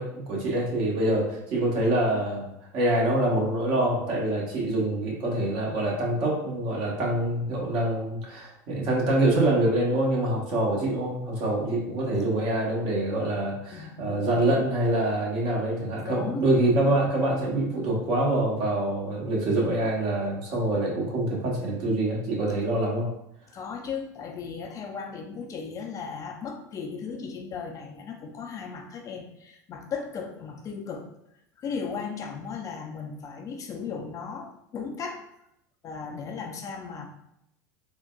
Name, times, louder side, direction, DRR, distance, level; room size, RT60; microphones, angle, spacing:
voice 1, 0.0-2.5 2.7-23.1, right 1 dB, 50° right, -2 dB, 1.0 m, -25 dB
voice 2, 13.7-14.5 16.0-16.5 23.5-31.1 31.6-35.2 35.8-37.1, left 5 dB, 35° left, 2 dB, 0.4 m, -36 dB
3.8 x 2.2 x 2.2 m, 0.79 s
hypercardioid pair, 85°, 10 cm